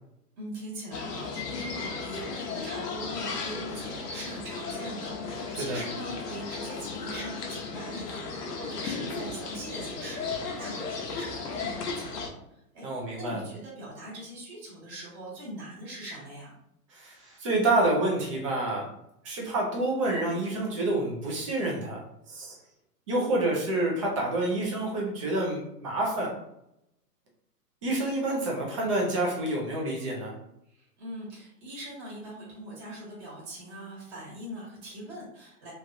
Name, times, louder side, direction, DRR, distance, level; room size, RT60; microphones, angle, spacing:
voice 1, 0.4-16.5 30.7-35.7, right 1 dB, 40° right, -6 dB, 1.4 m, -41 dB
sound 1, 0.9-12.3, left 4 dB, 75° left, 0.9 m, -35 dB
voice 2, 12.8-13.4 16.9-18.9 19.2-22.0 22.3-22.6 23.1-26.4 27.8-30.3, right 2 dB, 20° right, -2 dB, 0.4 m, -28 dB
3.2 x 2.3 x 2.6 m, 0.82 s
hypercardioid pair, 140°, 48 cm